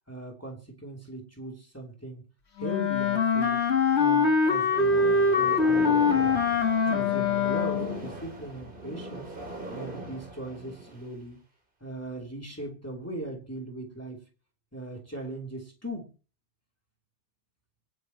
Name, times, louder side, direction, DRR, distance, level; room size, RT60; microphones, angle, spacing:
voice 1, 0.1-2.2 2.6-3.6 3.9-6.4 6.8-9.3 9.7-11.4 11.8-14.2 14.7-16.1, right 1 dB, 15° left, -1 dB, 3.0 m, -39 dB
Wind instrument woodwind instrument, 2.6-8.0, left 5 dB, 80° left, 1.8 m, -23 dB
sound 1, 4.7-11.1, right 2 dB, 50° right, 2.6 m, -40 dB
26.0 x 9.3 x 3.0 m, 0.38 s
omnidirectional pair, 1.1 m